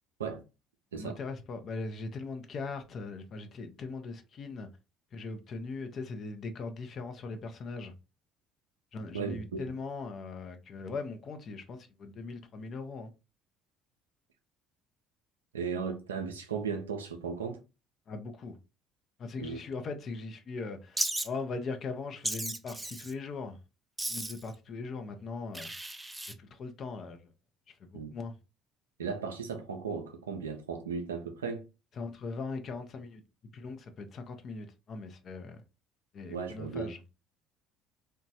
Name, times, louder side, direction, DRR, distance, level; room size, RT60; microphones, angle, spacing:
voice 1, 0.9-4.7 5.1-7.9 8.9-13.1 18.1-18.6 19.2-23.6 24.1-25.7 26.4-27.3 27.7-28.3 32.0-33.2 33.5-35.6 36.1-37.0, left 3 dB, 45° left, 0.5 m, -40 dB
voice 2, 9.1-9.6 15.5-17.6 19.4-19.6 27.9-28.1 29.0-31.6 36.3-36.9, right 5 dB, 85° right, 0.3 m, -36 dB
Wild animals, 21.0-21.3 22.2-23.1 24.0-24.5 25.5-26.3, right 1 dB, 10° right, 0.4 m, -35 dB
2.9 x 2.1 x 2.7 m
hypercardioid pair, 55°, 0 cm